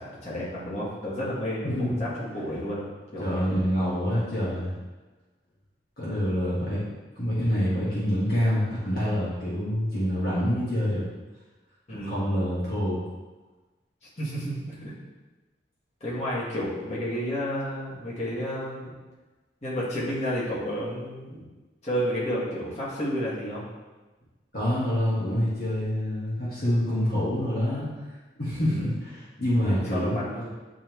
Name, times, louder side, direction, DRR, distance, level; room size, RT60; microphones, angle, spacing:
voice 1, 0.0-2.9 3.1-3.5 11.9-12.2 14.2-14.9 16.0-18.9 19.6-21.4 21.8-23.6 28.6-28.9 29.7-30.5, equal, 40° left, -8 dB, 2.0 m, -31 dB
voice 2, 1.6-2.1 3.2-4.7 6.0-6.8 7.2-11.0 11.9-13.0 24.5-27.9 28.4-30.2, equal, 55° left, -9 dB, 1.7 m, -26 dB
9.9 x 3.5 x 3.1 m, 1.2 s
head